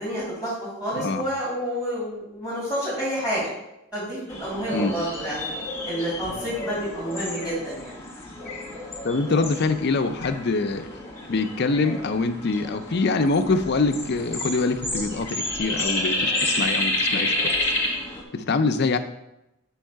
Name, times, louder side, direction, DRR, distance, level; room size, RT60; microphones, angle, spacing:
voice 1, 0.0-3.5 3.9-5.5 5.9-7.9, equal, 5° right, -8 dB, 2.5 m, -29 dB
voice 2, 1.0-1.3 4.7-4.9 9.0-10.9 11.3-17.5 18.3-19.0, left 3 dB, 50° left, 7 dB, 0.5 m, -24 dB
sound 1, 4.3-18.2, left 1 dB, 15° left, 1.4 m, -30 dB
6.4 x 4.6 x 4.6 m, 0.89 s
head